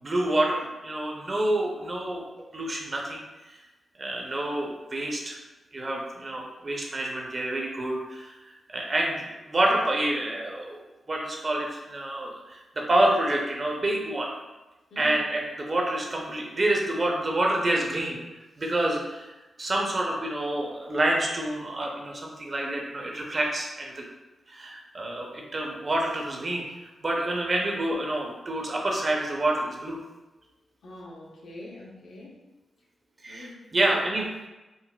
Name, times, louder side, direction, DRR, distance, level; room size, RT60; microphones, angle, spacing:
voice 1, 0.0-2.2 2.5-3.2 4.0-5.4 5.7-8.3 8.7-10.8 11.1-14.3 15.0-18.2 18.6-19.3 19.6-24.0 24.5-26.6 27.0-30.0 33.2-34.5, right 1 dB, 40° right, 0 dB, 0.6 m, -28 dB
voice 2, 14.9-15.2 30.8-32.4 33.3-33.6 33.9-34.0, left 2 dB, 80° left, -3 dB, 0.7 m, -43 dB
3.8 x 2.0 x 2.3 m, 1.1 s
cardioid pair, 80°, 0 cm